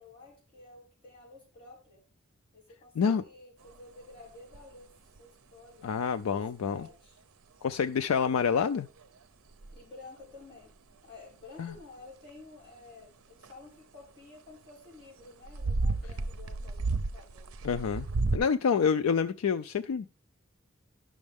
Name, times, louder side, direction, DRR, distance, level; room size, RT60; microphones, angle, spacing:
voice 1, 0.0-2.0 2.5-5.9 6.1-7.2 9.7-10.7 11.0-17.5, left 3 dB, 25° left, 5.3 m, -52 dB
sound 1, 3.7-3.8 4.5-4.7 5.2-5.3 6.7-6.8 9.0-9.1 9.5-9.8 11.7-11.8 13.4-13.5 15.4-18.4, right 3 dB, 90° right, 0.6 m, -32 dB
voice 2, 5.8-6.9 7.6-8.9 11.6-11.7 17.6-18.1 18.3-20.1, left 6 dB, 90° left, 0.4 m, -27 dB
10.5 x 6.3 x 3.5 m
head